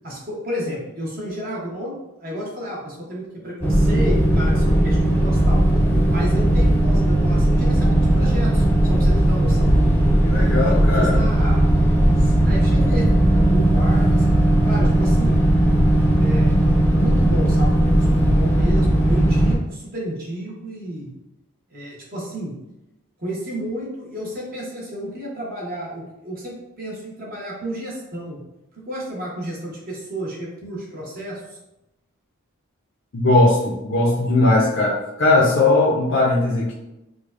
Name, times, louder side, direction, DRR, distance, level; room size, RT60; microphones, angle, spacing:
voice 1, 0.0-1.9 2.2-5.6 6.1-8.6 8.9-9.7 10.3-11.6 12.2-13.1 13.3-14.3 14.7-15.4 16.2-21.1 21.7-22.5 23.2-28.4 28.8-31.6, equal, 45° right, -4 dB, 1.0 m, -31 dB
sound 1, 3.6-19.5, right 1 dB, 10° left, 0.5 m, -17 dB
voice 2, 10.2-11.1 33.1-36.7, left 2 dB, 60° left, -4 dB, 0.6 m, -18 dB
4.8 x 2.2 x 2.4 m, 0.91 s
head